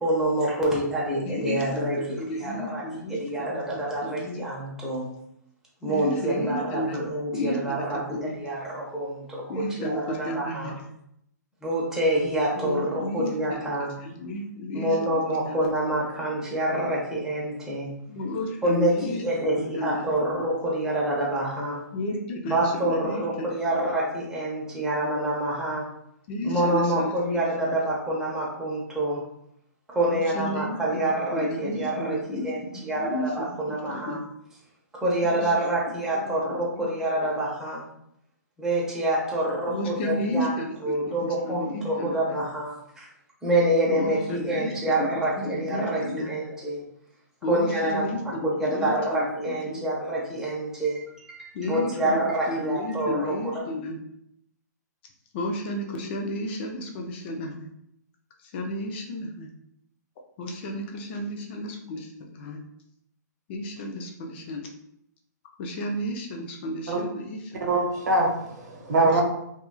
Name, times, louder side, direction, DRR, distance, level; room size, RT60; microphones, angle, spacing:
voice 1, 0.0-2.8 3.1-5.1 5.8-10.7 11.6-13.9 14.7-17.9 18.6-21.8 22.4-25.9 26.4-29.2 29.9-34.2 34.9-37.8 38.6-40.5 40.8-43.1 43.4-46.8 47.5-53.6, right 1 dB, 5° right, -5 dB, 0.7 m, -27 dB
voice 2, 1.3-1.9 2.2-4.4 5.9-7.0 7.3-7.8 8.1-8.3 9.5-10.7 12.6-13.6 14.0-15.2 15.5-15.6 18.1-19.2 19.7-20.0 21.9-23.2 23.8-23.9 26.3-27.7 30.1-32.5 32.9-34.2 35.2-35.7 36.5-36.9 37.3-37.4 39.7-40.8 41.2-42.4 43.9-45.1 45.4-46.3 47.4-49.3 49.7-49.8 51.5-52.2 52.5-54.0 55.3-57.7 58.5-59.5 60.4-62.6 63.5-64.7 65.6-67.6 69.0-69.2, left 1 dB, 35° left, 2 dB, 0.4 m, -32 dB
voice 3, 67.6-69.2, right 2 dB, 65° right, 1 dB, 0.8 m, -23 dB
2.9 x 2.4 x 2.3 m, 0.76 s
hypercardioid pair, 145°, 10 cm